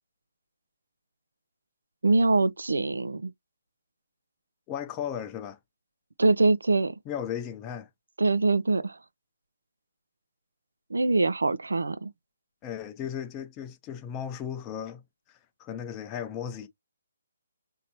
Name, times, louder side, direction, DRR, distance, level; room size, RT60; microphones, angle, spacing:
voice 1, 2.0-3.3 6.2-6.9 8.2-9.0 10.9-12.1, right 3 dB, 85° right, 0.5 m, -23 dB
voice 2, 4.7-5.6 7.1-7.9 12.6-15.0 15.3-16.7, left 9 dB, 20° left, 0.6 m, -36 dB
5.2 x 2.7 x 2.9 m
hypercardioid pair, 150°, 0 cm